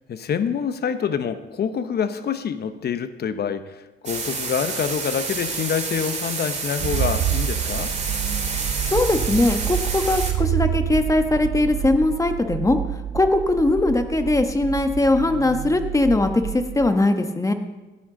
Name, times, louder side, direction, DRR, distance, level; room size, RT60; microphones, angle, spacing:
voice 1, 0.1-7.9, left 7 dB, 55° left, 11 dB, 0.9 m, -26 dB
sound 1, 4.1-10.3, right 4 dB, 35° right, 2.4 m, -29 dB
sound 2, 6.8-16.9, right 11 dB, 70° right, 0.8 m, -28 dB
voice 2, 8.8-12.8 13.1-17.5, left 2 dB, 15° left, 7 dB, 1.2 m, -20 dB
17.5 x 9.9 x 3.9 m, 1.1 s
cardioid pair, 90°, 20 cm